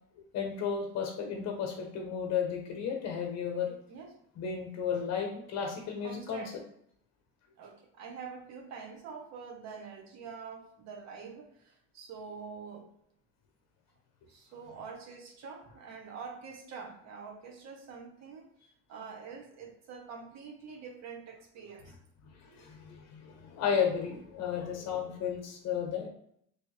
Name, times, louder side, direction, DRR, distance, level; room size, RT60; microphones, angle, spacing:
voice 1, 0.2-3.7 4.4-6.5 21.8-21.9 22.3-26.1, left 7 dB, 60° left, 2 dB, 0.9 m, -33 dB
voice 2, 6.0-6.5 7.6-12.9 14.3-18.5 18.9-21.9 22.4-22.6, right 5 dB, 60° right, 2 dB, 1.0 m, -46 dB
3.5 x 3.1 x 3.1 m, 0.69 s
cardioid pair, 120°, 30 cm